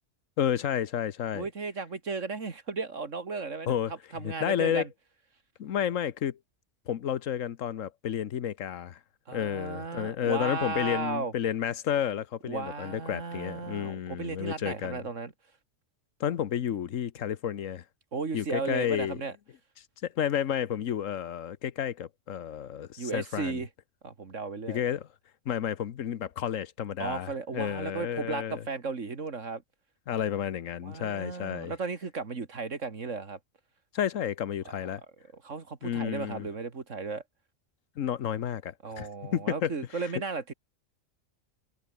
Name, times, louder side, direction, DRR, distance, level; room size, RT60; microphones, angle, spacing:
voice 1, 0.4-1.5 3.7-3.9 4.2-4.8 5.6-6.4 6.9-9.0 9.3-15.0 16.2-17.8 18.3-19.2 20.0-23.6 24.7-25.1 25.4-28.6 30.1-31.7 33.9-35.0 35.8-36.5 38.0-39.7, left 9 dB, 85° left, 1.3 m, -31 dB
voice 2, 1.3-4.9 9.3-11.3 12.4-15.3 18.1-19.3 23.0-23.7 24.0-24.8 27.0-29.6 30.8-33.4 34.6-34.9 35.4-37.2 38.8-40.5, right 4 dB, 75° right, 2.5 m, -35 dB
omnidirectional pair, 1.3 m